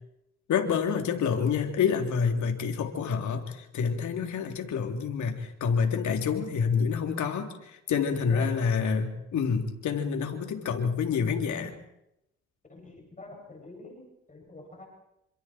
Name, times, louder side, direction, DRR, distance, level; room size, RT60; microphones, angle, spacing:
voice 1, 0.5-11.7, left 6 dB, 70° left, 4 dB, 3.7 m, -28 dB
voice 2, 12.7-14.9, left 2 dB, 25° left, 1 dB, 7.6 m, -46 dB
28.0 x 26.5 x 4.7 m, 0.84 s
cardioid pair, 90°, 30 cm